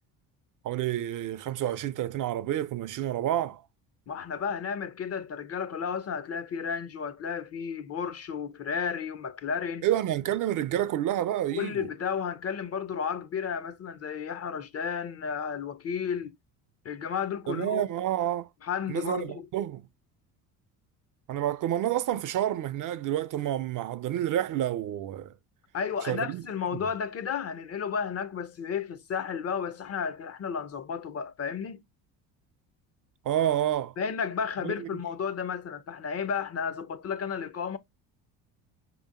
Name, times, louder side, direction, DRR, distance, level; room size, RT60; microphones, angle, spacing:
voice 1, 0.6-3.6 9.8-11.9 17.5-18.5 18.9-19.8 21.3-25.3 26.1-26.4 33.3-33.9 34.6-34.9, right 12 dB, 45° right, 0.5 m, -29 dB
voice 2, 4.1-9.9 11.5-16.3 16.8-17.8 18.6-19.5 25.7-31.8 34.0-37.8, left 7 dB, 35° left, 0.5 m, -33 dB
5.0 x 2.9 x 2.4 m
hypercardioid pair, 65°, 45 cm